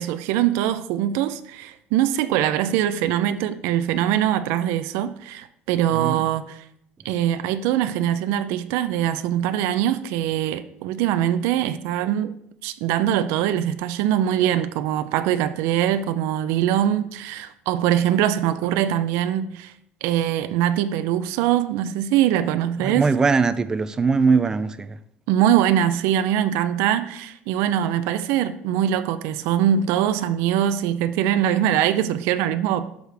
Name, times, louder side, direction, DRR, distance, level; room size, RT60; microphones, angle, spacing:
voice 1, 0.0-6.6 7.0-19.7 20.0-23.1 25.3-32.9, right 11 dB, 85° right, 0.5 m, -22 dB
voice 2, 5.9-6.2 22.8-25.0, right 4 dB, 15° right, 0.3 m, -21 dB
11.0 x 6.6 x 3.4 m
cardioid pair, 175°, 4 cm